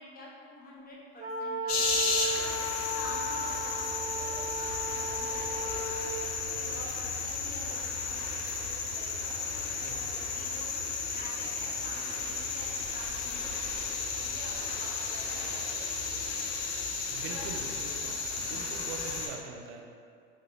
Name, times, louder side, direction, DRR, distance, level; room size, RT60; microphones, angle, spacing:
voice 1, 0.0-2.5 2.9-10.7 11.1-16.4 17.3-18.6, left 1 dB, 30° left, -4 dB, 0.8 m, -48 dB
sound 1, 1.2-6.1, right 1 dB, 25° right, 0.6 m, -35 dB
sound 2, 1.7-19.3, left 4 dB, 80° left, 0.6 m, -33 dB
voice 2, 17.1-19.9, right 4 dB, 75° right, 2 dB, 0.5 m, -43 dB
3.6 x 2.1 x 3.0 m, 2.3 s
supercardioid pair, 85°, 30 cm